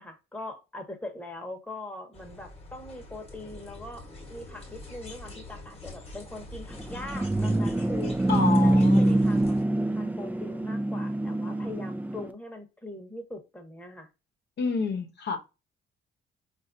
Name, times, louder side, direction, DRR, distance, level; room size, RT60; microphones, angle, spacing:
voice 1, 0.0-8.2 8.6-9.6 9.9-14.1, left 2 dB, 5° left, 1.0 m, -41 dB
sound 1, 2.1-9.6, left 2 dB, 30° left, 1.1 m, -45 dB
sound 2, 6.7-12.3, right 1 dB, 10° right, 0.4 m, -25 dB
voice 2, 8.3-9.2 14.6-15.4, left 5 dB, 60° left, 0.9 m, -29 dB
4.1 x 2.5 x 2.5 m
cardioid pair, 90°, 20 cm